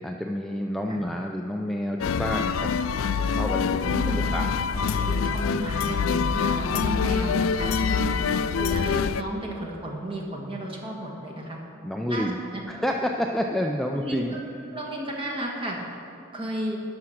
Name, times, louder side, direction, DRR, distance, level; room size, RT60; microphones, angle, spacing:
voice 1, 0.0-2.7 3.2-5.2 9.5-9.6 11.8-12.4 12.7-14.4, equal, ahead, 1 dB, 0.3 m, -29 dB
sound 1, 2.0-9.2, left 6 dB, 85° left, 0.4 m, -25 dB
voice 2, 3.8-4.3 5.0-8.3 8.5-11.6 12.1-12.6 13.9-14.4 14.7-15.8 16.3-16.8, right 1 dB, 25° right, -2 dB, 1.5 m, -33 dB
11.5 x 5.8 x 6.3 m, 2.6 s
head